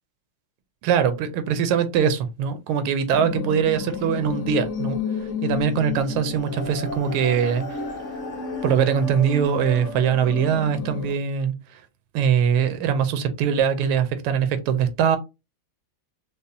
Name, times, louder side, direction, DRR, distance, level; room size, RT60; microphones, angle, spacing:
voice 1, 0.8-5.0 5.4-7.8 8.6-11.5 12.1-15.2, right 7 dB, 90° right, 1.5 m, -22 dB
sound 1, 3.1-11.1, left 5 dB, 50° left, 1.0 m, -31 dB
5.2 x 2.0 x 2.6 m
omnidirectional pair, 2.3 m